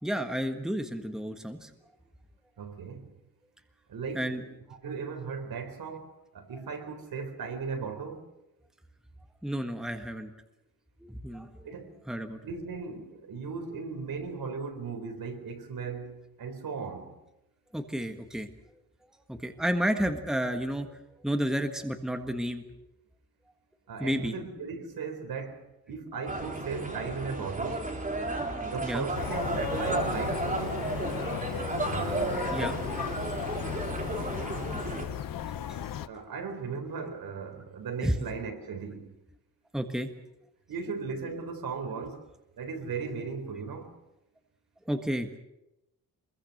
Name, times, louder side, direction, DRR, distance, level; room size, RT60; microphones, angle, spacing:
voice 1, 0.0-1.7 4.1-4.4 9.4-10.3 11.0-11.5 12.1-12.4 17.7-18.5 19.3-20.9 21.2-22.6 24.0-24.3 28.8-29.1 32.5-32.8 35.7-35.9 38.0-38.1 39.7-40.1 44.9-45.3, equal, ahead, 1.5 m, -31 dB
voice 2, 2.6-3.1 3.9-4.5 4.8-8.2 11.6-11.9 12.4-17.2 23.9-27.9 28.6-30.8 31.8-32.5 36.1-39.1 40.7-42.3 42.6-43.9, right 5 dB, 70° right, 4.0 m, -37 dB
sound 1, 26.3-35.1, right 2 dB, 20° right, 3.6 m, -33 dB
sound 2, 29.1-36.1, left 10 dB, 65° left, 0.9 m, -36 dB
26.5 x 22.0 x 6.6 m
wide cardioid pair, 160°, 37 cm